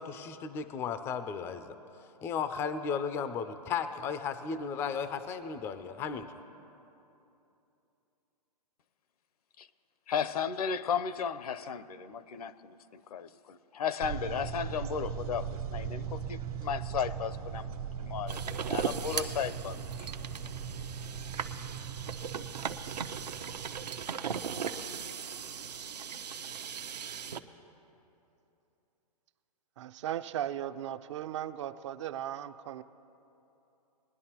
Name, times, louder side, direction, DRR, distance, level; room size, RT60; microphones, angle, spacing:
voice 1, 0.0-1.7 2.2-6.3, left 6 dB, 10° left, 11 dB, 0.3 m, -35 dB
voice 2, 10.1-20.1, left 7 dB, 65° left, 14 dB, 0.6 m, -35 dB
sound 1, 14.0-24.1, right 7 dB, 65° right, 1.3 m, -39 dB
sound 2, 18.3-27.4, right 7 dB, 85° right, 0.7 m, -38 dB
voice 3, 29.8-32.8, right 11 dB, 45° right, 12 dB, 0.5 m, -37 dB
21.0 x 10.5 x 2.9 m, 2.9 s
hypercardioid pair, 135°, 21 cm